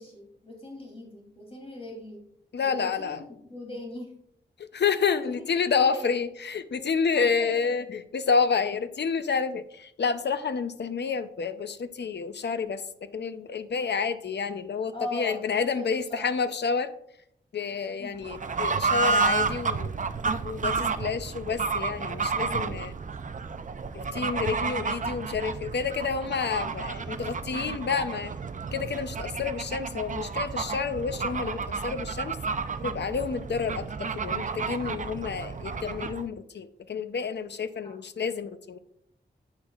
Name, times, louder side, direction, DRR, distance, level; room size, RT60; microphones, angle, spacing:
voice 1, 0.0-2.2 2.6-3.2 3.5-4.1 5.1-5.3 5.7-6.0 7.1-7.7 14.9-16.3 18.0-18.1 37.8-38.0, left 1 dB, 30° left, -1 dB, 2.9 m, -40 dB
voice 2, 2.5-3.2 4.6-16.9 17.5-19.9 20.4-22.9 23.9-28.3 28.7-32.4 32.8-38.8, left 5 dB, 70° left, 11 dB, 0.7 m, -29 dB
Fowl / Bird, 18.2-36.3, right 4 dB, 45° right, 0.5 m, -31 dB
10.0 x 8.5 x 2.4 m, 0.72 s
wide cardioid pair, 100°, 19 cm